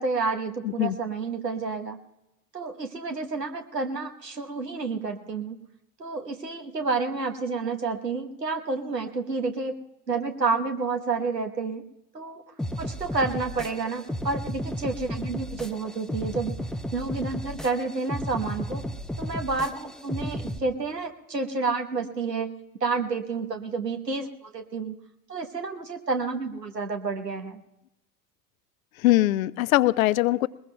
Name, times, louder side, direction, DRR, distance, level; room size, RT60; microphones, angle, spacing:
voice 1, 0.0-2.0 2.5-5.6 6.0-9.7 10.1-11.8 12.1-12.4 12.8-16.5 16.9-18.8 19.2-25.0 25.3-27.6, right 4 dB, 90° right, 5 dB, 1.2 m, -30 dB
voice 2, 0.6-1.0 29.0-30.5, left 17 dB, 60° left, 19 dB, 0.6 m, -21 dB
sound 1, 12.6-20.6, equal, ahead, 0.5 m, -34 dB
21.5 x 20.5 x 2.2 m, 0.91 s
figure-of-eight pair, 75°, 47 cm